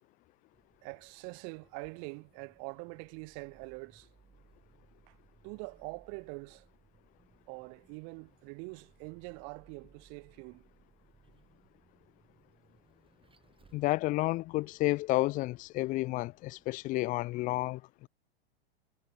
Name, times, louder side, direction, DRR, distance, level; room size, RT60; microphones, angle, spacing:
Vehicle, 0.5-17.5, right 5 dB, 15° right, 5.0 m, -66 dB
voice 1, 0.8-4.1 5.1-5.2 5.4-6.7 7.5-10.6, right 40 dB or more, 50° right, 4.0 m, -44 dB
voice 2, 13.7-18.1, left 19 dB, 25° left, 0.3 m, -31 dB
hypercardioid pair, 105°, 32 cm